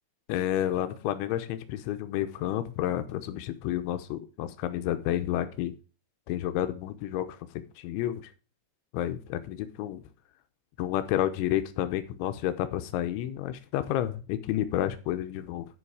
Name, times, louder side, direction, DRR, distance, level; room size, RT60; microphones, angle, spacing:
voice 1, 0.3-5.7 6.3-8.3 8.9-10.0 10.8-15.7, left 12 dB, 90° left, 10 dB, 3.2 m, -30 dB
11.5 x 5.7 x 4.8 m, 0.34 s
omnidirectional pair, 5.2 m